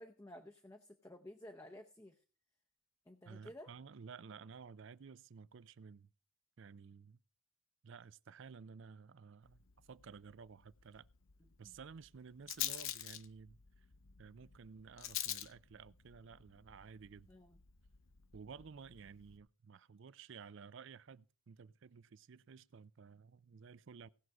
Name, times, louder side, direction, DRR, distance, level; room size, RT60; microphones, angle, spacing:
voice 1, 0.0-2.2 3.1-3.7 11.6-11.8 17.3-17.6, left 1 dB, 15° left, 0.7 m, -54 dB
voice 2, 3.3-6.1 6.6-7.2 7.8-11.1 11.6-13.9 14.2-17.3 18.3-24.1, right 5 dB, 55° right, 0.4 m, -54 dB
Rattle, 9.4-19.4, left 12 dB, 65° left, 0.8 m, -47 dB
18.0 x 6.3 x 4.7 m
head